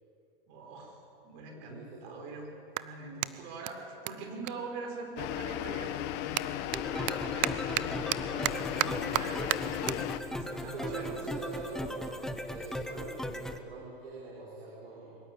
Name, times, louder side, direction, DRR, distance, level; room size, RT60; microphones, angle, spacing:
voice 1, 0.5-2.5 2.8-6.5 6.9-7.9 8.2-9.9 10.2-11.1, right 3 dB, 50° right, 2 dB, 5.6 m, -43 dB
Clapping, 0.6-0.7 1.4-5.4 5.7-12.4, right 17 dB, 30° right, 0.5 m, -37 dB
voice 2, 1.5-2.2 10.6-15.2, right 3 dB, 90° right, -4 dB, 4.8 m, -43 dB
sound 1, 5.2-10.2, left 11 dB, 35° left, 1.0 m, -35 dB
sound 2, 6.7-13.6, left 1 dB, ahead, 0.8 m, -38 dB
23.5 x 13.0 x 9.1 m, 2.6 s
hypercardioid pair, 135°, 29 cm